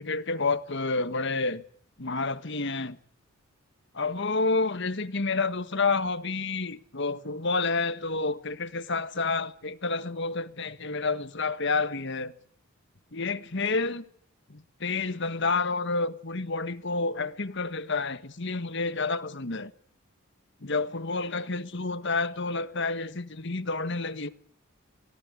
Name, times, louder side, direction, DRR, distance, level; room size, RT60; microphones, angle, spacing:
voice 1, 0.0-1.6 2.0-3.0 3.9-12.3 13.1-14.0 14.5-19.7 20.6-24.3, left 3 dB, 55° left, 1.5 m, -29 dB
24.0 x 18.5 x 9.7 m
head